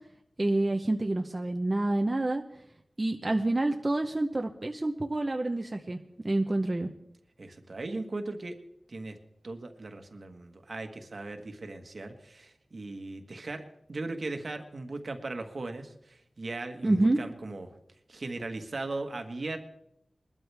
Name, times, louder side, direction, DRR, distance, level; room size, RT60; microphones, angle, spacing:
voice 1, 0.4-2.4 3.0-6.0 6.2-6.9 16.8-17.2, right 2 dB, 35° right, 4 dB, 0.8 m, -27 dB
voice 2, 7.4-8.5 8.9-9.2 9.4-13.6 13.9-17.7 18.1-19.6, right 2 dB, 65° right, 6 dB, 1.5 m, -38 dB
21.0 x 12.5 x 3.5 m, 0.76 s
wide cardioid pair, 60°, 0 cm